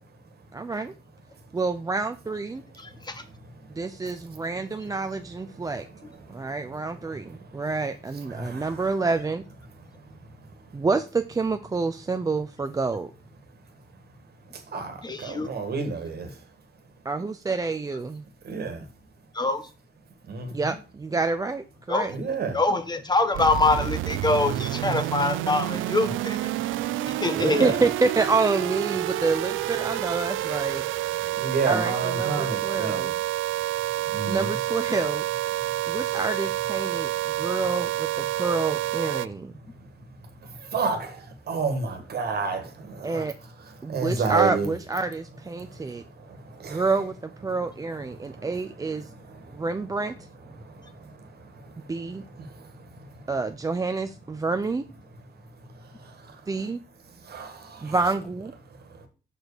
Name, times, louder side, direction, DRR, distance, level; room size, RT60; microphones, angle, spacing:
voice 1, 0.5-0.9 1.5-2.6 3.7-5.9 6.3-9.4 10.7-13.1 17.0-18.2 20.5-22.1 27.6-30.9 31.7-33.2 34.3-35.2 35.5-39.5 43.0-43.3 43.8-46.0 46.7-49.1 49.5-50.1 51.9-52.2 53.3-54.8 56.5-56.8 57.8-58.5, right 3 dB, 20° right, 0.4 m, -28 dB
voice 2, 2.8-3.2 15.0-15.5 19.3-19.7 21.9-22.2 22.5-26.5 27.0-27.6, left 3 dB, 20° left, 0.9 m, -25 dB
voice 3, 7.1-7.6 8.3-8.9 14.5-16.4 18.4-18.9 20.3-20.7 22.1-22.6 26.9-27.0 27.3-27.8 31.2-33.1 34.1-34.5 40.4-42.9 43.8-44.7 45.6-46.8 48.1-48.5 49.3-49.7 50.6-51.9 52.4-53.2 55.7-56.4 57.2-57.9, right 4 dB, 55° right, 1.7 m, -31 dB
sound 1, 23.3-39.3, right 15 dB, 80° right, 0.4 m, -28 dB
6.2 x 4.9 x 4.9 m
cardioid pair, 90°, 20 cm